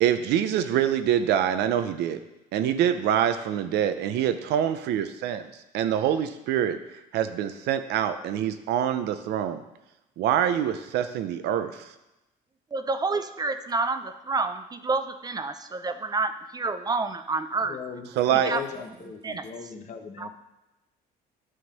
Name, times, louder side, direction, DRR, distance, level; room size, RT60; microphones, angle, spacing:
voice 1, 0.0-2.2 2.5-5.5 5.7-6.8 7.1-9.6 10.2-11.9 18.2-18.6, right 10 dB, 80° right, 10 dB, 0.6 m, -25 dB
voice 2, 12.7-17.8 18.3-18.6 19.2-19.5 20.2-20.3, right 3 dB, 25° right, 10 dB, 0.5 m, -29 dB
voice 3, 17.6-18.1 18.4-20.3, left 7 dB, 45° left, 5 dB, 1.0 m, -38 dB
9.6 x 3.7 x 6.5 m, 0.96 s
cardioid pair, 110°, 17 cm